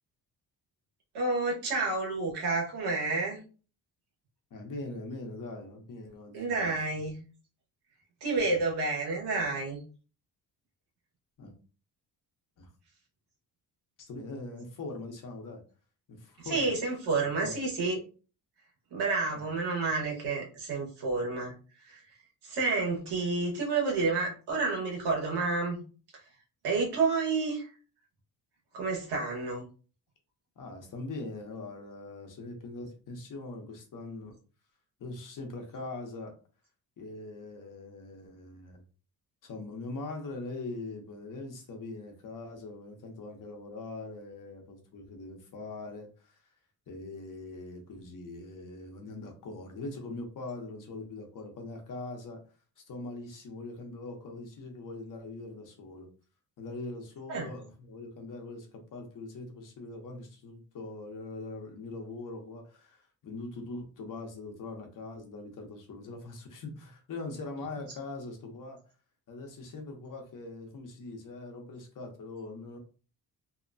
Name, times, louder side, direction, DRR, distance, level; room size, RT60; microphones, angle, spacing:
voice 1, 1.1-3.4 6.3-7.2 8.2-9.8 16.4-18.0 18.9-21.5 21.8-22.0 22.4-25.8 26.6-27.7 28.7-29.6 57.3-57.5, right 3 dB, 90° right, -1 dB, 1.2 m, -30 dB
voice 2, 4.5-6.8 8.4-8.6 11.4-11.5 12.6-12.7 14.0-15.6 16.1-16.7 17.4-17.7 19.3-19.5 30.6-34.3 35.0-36.3 37.0-38.8 39.4-46.4 46.9-52.4 52.8-56.1 56.6-68.8 69.3-72.8, left 2 dB, 55° left, 3 dB, 0.9 m, -42 dB
2.8 x 2.2 x 2.5 m, 0.36 s
cardioid pair, 110°, 39 cm